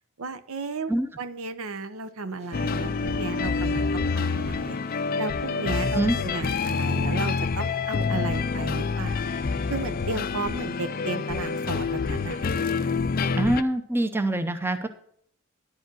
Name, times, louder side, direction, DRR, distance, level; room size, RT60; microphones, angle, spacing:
voice 1, 0.2-0.9 1.2-9.3 9.7-12.6, right 3 dB, 75° right, 12 dB, 0.8 m, -34 dB
sound 1, 2.4-12.3, right 1 dB, 30° right, 1.4 m, -50 dB
sound 2, 2.5-13.6, left 4 dB, 40° left, 0.4 m, -27 dB
voice 2, 13.4-14.9, right 1 dB, 10° right, 9 dB, 0.6 m, -24 dB
10.5 x 4.9 x 7.7 m, 0.64 s
head